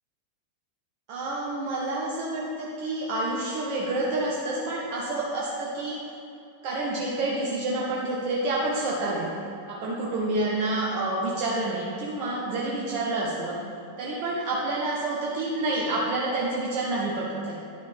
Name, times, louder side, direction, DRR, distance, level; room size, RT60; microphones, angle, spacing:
voice 1, 1.1-6.0 6.6-13.6 14.0-17.6, right 2 dB, 45° right, -5 dB, 1.1 m, -28 dB
9.7 x 5.4 x 3.6 m, 2.7 s
figure-of-eight pair, 90°, 0 cm